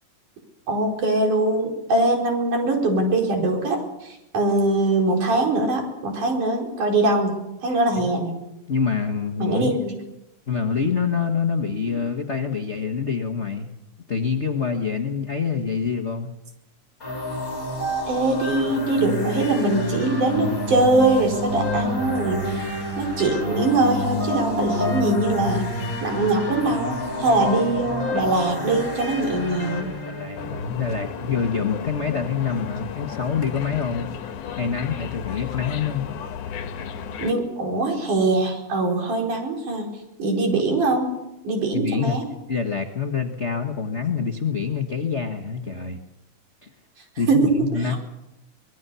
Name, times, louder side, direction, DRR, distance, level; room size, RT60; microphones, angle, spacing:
voice 1, 0.7-8.4 9.4-9.9 18.1-25.7 26.0-29.9 37.2-39.9 40.2-41.1 41.4-42.2 47.2-48.0, right 2 dB, 75° right, 1 dB, 6.2 m, -22 dB
voice 2, 8.7-9.7 10.5-13.7 14.1-16.3 30.1-34.1 34.6-36.1 41.7-42.2 42.5-46.0 46.6-46.7 47.2-47.9, left 6 dB, 50° left, 2 dB, 0.8 m, -26 dB
sound 1, 17.0-30.5, left 1 dB, 25° left, 5.3 m, -28 dB
sound 2, 30.4-37.3, left 8 dB, 75° left, 2.8 m, -34 dB
24.5 x 21.0 x 7.0 m, 0.92 s
omnidirectional pair, 3.6 m